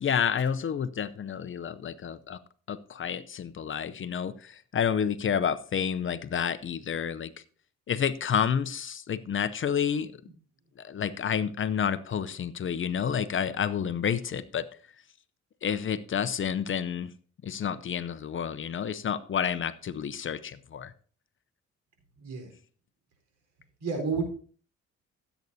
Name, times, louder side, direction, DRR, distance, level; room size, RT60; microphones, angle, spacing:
voice 1, 0.0-2.4 2.7-7.3 7.9-10.1 10.8-14.6 15.6-17.1 17.4-20.9, left 7 dB, 40° left, 14 dB, 0.7 m, -29 dB
voice 2, 22.2-22.5 23.8-24.2, right 5 dB, 80° right, 3 dB, 4.3 m, -30 dB
15.5 x 8.1 x 2.7 m, 0.43 s
cardioid pair, 90°, 30 cm